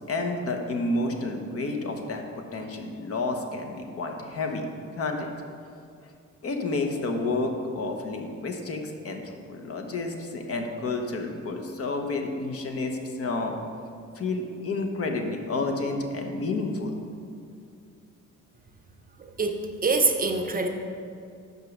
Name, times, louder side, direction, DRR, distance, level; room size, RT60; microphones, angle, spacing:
voice 1, 0.0-2.2 2.5-4.7 5.0-5.3 6.4-13.6 14.1-17.0, left 3 dB, 50° left, 3 dB, 1.0 m, -30 dB
voice 2, 19.2-20.7, right 3 dB, 30° right, 5 dB, 0.7 m, -25 dB
5.3 x 5.3 x 6.3 m, 2.4 s
cardioid pair, 90°, 30 cm